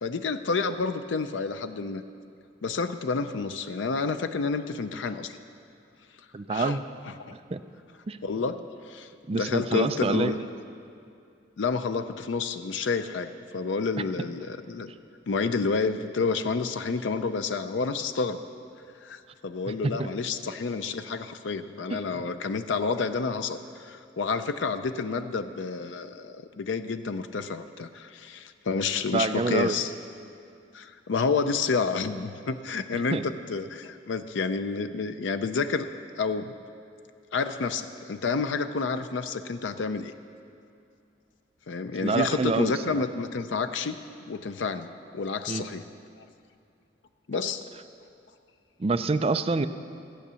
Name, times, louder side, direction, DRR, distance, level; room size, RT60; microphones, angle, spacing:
voice 1, 0.0-2.0 2.6-5.4 6.5-6.8 7.2-7.3 8.2-10.4 11.6-14.9 15.3-18.4 19.0-29.9 30.7-35.9 36.2-36.5 37.3-40.1 41.7-44.0 44.3-44.9 45.1-45.8 46.2-46.3 47.3-47.7, left 4 dB, 80° left, 10 dB, 0.5 m, -29 dB
voice 2, 6.3-6.8 7.3-7.6 8.1-8.2 9.3-10.3 14.2-14.3 19.7-20.1 21.9-22.3 29.1-29.8 32.9-33.2 42.0-43.0 45.5-45.7 48.8-49.7, right 3 dB, 30° right, 10 dB, 0.4 m, -27 dB
15.0 x 8.6 x 6.8 m, 2.5 s
head